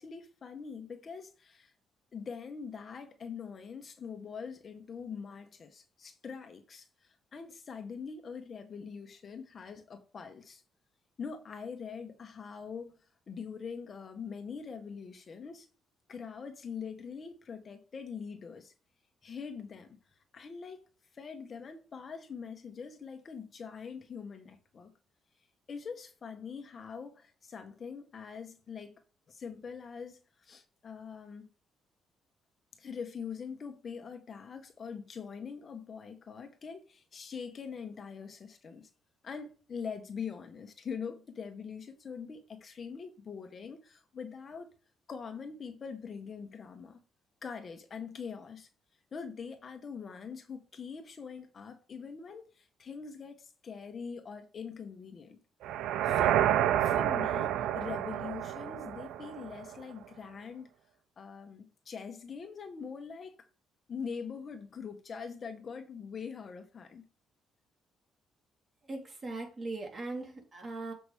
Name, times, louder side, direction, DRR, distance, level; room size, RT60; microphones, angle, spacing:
voice 1, 0.0-1.7 2.1-10.6 11.2-13.0 13.3-15.7 16.1-18.7 19.2-20.0 20.3-20.8 21.1-24.9 25.7-28.9 29.3-31.5 32.8-38.9 39.2-44.7 45.1-47.0 47.4-48.7 49.1-55.4 56.0-56.4 56.8-60.7 61.2-63.4 63.9-67.0, left 6 dB, 45° left, 1.5 m, -43 dB
sound 1, 55.6-59.7, right 11 dB, 85° right, 0.6 m, -29 dB
voice 2, 68.9-70.9, right 3 dB, 35° right, 3.7 m, -39 dB
7.9 x 6.1 x 3.6 m
cardioid pair, 95°, 0 cm